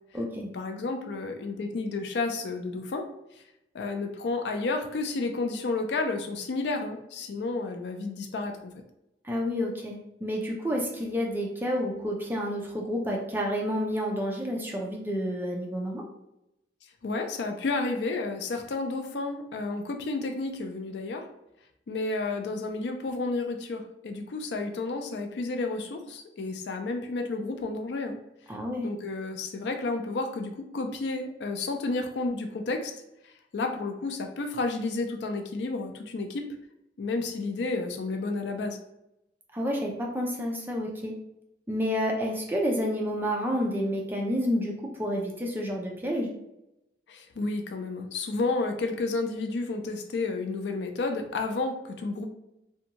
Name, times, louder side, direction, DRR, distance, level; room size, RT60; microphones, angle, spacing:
voice 1, 0.4-3.1 3.4-3.5 3.7-8.7 17.0-21.2 21.9-28.2 28.8-32.9 33.2-36.4 37.0-38.8 47.1-52.3, left 3 dB, 75° left, 5 dB, 0.4 m, -31 dB
voice 2, 9.2-16.0 28.5-28.9 39.5-41.1 41.7-44.7 45.0-46.3, equal, 10° right, -1 dB, 0.4 m, -29 dB
2.6 x 2.2 x 2.8 m, 0.86 s
head